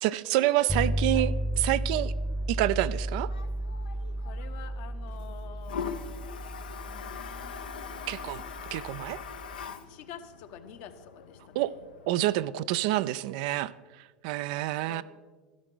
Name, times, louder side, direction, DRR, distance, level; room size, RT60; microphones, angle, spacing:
voice 1, 0.0-2.1 2.5-3.3 8.1-8.4 8.7-9.2 11.6-11.7 12.1-13.7 14.2-15.0, right 15 dB, 65° right, 15 dB, 0.4 m, -27 dB
Toilet flush, 0.7-12.3, left 6 dB, 85° left, 0.7 m, -43 dB
sound 1, 0.7-9.7, equal, 5° left, 0.7 m, -33 dB
voice 2, 4.2-6.4 6.9-8.6 9.6-11.9 12.3-12.6 14.9-15.0, left 9 dB, 60° left, 7 dB, 1.0 m, -48 dB
13.0 x 11.0 x 3.8 m, 1.4 s
hypercardioid pair, 85°, 5 cm